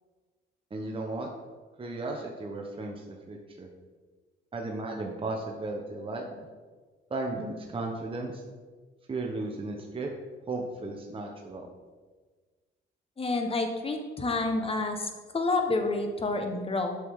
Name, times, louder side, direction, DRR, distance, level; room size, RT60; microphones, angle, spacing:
voice 1, 0.7-1.3 1.8-3.7 4.5-6.4 7.1-8.4 9.1-10.1 10.5-11.7, right 2 dB, 25° right, 0 dB, 1.0 m, -35 dB
voice 2, 13.2-16.9, left 3 dB, 30° left, 5 dB, 1.1 m, -29 dB
8.1 x 6.1 x 3.7 m, 1.4 s
cardioid pair, 90°, 20 cm